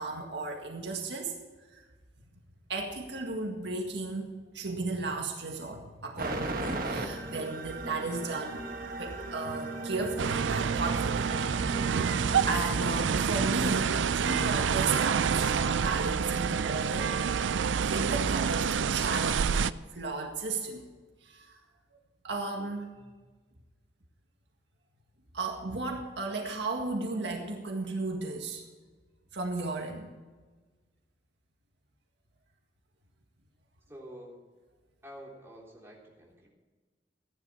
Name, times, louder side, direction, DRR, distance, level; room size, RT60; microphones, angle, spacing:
voice 1, 0.0-1.3 1.7-1.8 2.7-11.3 11.9-17.2 17.8-19.6 19.9-20.9 21.2-21.6 22.2-23.1 25.3-28.6 29.3-30.1, right 3 dB, 70° right, 2 dB, 1.9 m, -35 dB
sound 1, 6.2-13.5, right 3 dB, 50° right, 1.4 m, -36 dB
sound 2, 10.2-19.7, right 6 dB, 85° right, 0.4 m, -28 dB
voice 2, 33.9-34.4 35.0-36.5, equal, 15° right, -4 dB, 3.5 m, -48 dB
14.5 x 11.0 x 4.8 m, 1.3 s
head